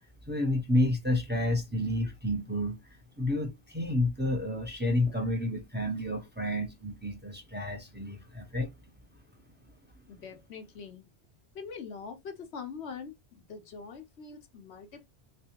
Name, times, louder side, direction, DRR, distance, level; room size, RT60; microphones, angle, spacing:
voice 1, 0.3-2.8 3.2-8.7, left 1 dB, 10° right, 0.8 m, -30 dB
voice 2, 10.1-11.1 11.5-15.1, left 5 dB, 85° left, 1.2 m, -43 dB
3.4 x 3.2 x 2.9 m
omnidirectional pair, 1.1 m